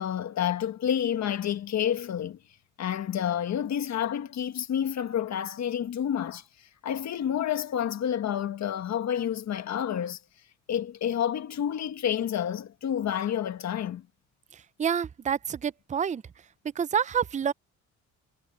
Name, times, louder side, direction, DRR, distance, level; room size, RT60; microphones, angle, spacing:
voice 1, 0.0-2.4 2.8-10.2 10.7-14.1, left 9 dB, 60° left, 1.5 m, -29 dB
voice 2, 14.5-16.2 16.8-17.5, right 8 dB, 25° right, 0.5 m, -28 dB
cardioid pair, 90°, 30 cm